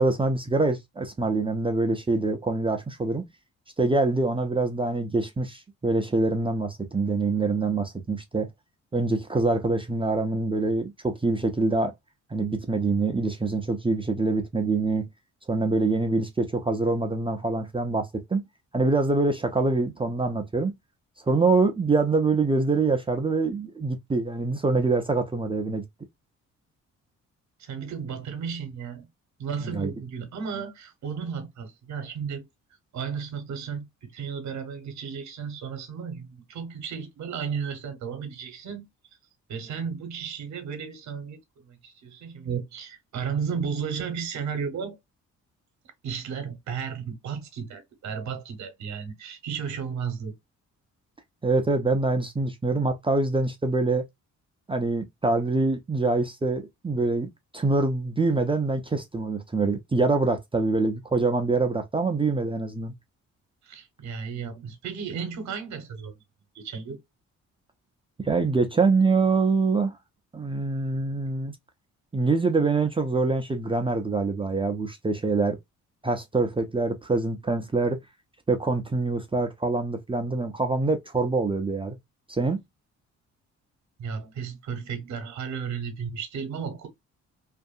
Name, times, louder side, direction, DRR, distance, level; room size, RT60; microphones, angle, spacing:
voice 1, 0.0-3.3 3.8-8.5 8.9-11.9 12.3-15.1 15.5-18.4 18.7-20.7 21.3-25.8 29.7-29.9 51.4-54.0 54.7-57.3 57.5-62.9 68.2-70.0 70.3-71.6 72.1-75.6 76.0-78.0 78.5-82.0 82.3-82.6, right 3 dB, 20° right, 0.5 m, -25 dB
voice 2, 27.6-29.1 29.4-32.4 32.9-38.9 39.5-45.0 46.0-50.4 63.6-66.2 66.5-67.0 84.0-86.9, right 6 dB, 65° right, 0.9 m, -34 dB
2.7 x 2.5 x 2.3 m
cardioid pair, 90°, 30 cm